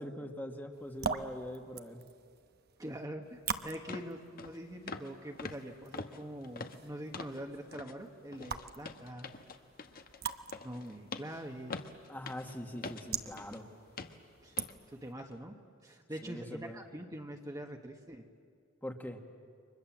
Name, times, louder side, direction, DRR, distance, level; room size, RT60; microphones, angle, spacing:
voice 1, 0.0-2.0 12.1-13.7 16.2-16.8 18.8-19.2, left 1 dB, 10° left, 4 dB, 1.6 m, -42 dB
sound 1, 0.7-15.1, right 6 dB, 50° right, 1.1 m, -44 dB
voice 2, 2.8-9.3 10.6-11.8 14.4-14.6 14.9-15.5 15.8-18.2, equal, 15° right, 3 dB, 1.4 m, -44 dB
sound 2, 3.3-3.4 3.9-4.1 4.4-4.6 4.9-5.1 5.4-7.4 7.7-8.0 8.3-13.6 14.0-14.2 14.6-14.8 15.2-15.3, left 3 dB, 45° left, 1.2 m, -45 dB
30.0 x 24.5 x 7.4 m, 2.2 s
head